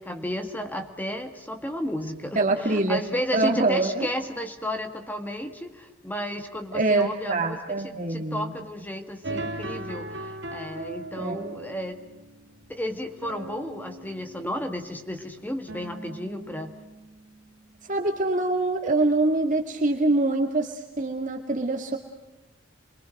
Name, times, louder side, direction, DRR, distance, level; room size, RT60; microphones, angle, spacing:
voice 1, 0.0-12.0 12.7-16.7, equal, 10° left, 6 dB, 1.8 m, -33 dB
voice 2, 2.4-3.0 3.3-4.1 6.7-8.5 11.2-11.4 17.9-22.0, right 2 dB, 40° right, 2 dB, 2.0 m, -24 dB
sound 1, 9.2-17.4, right 2 dB, 60° right, 1.8 m, -39 dB
28.5 x 23.5 x 6.5 m, 1.0 s
head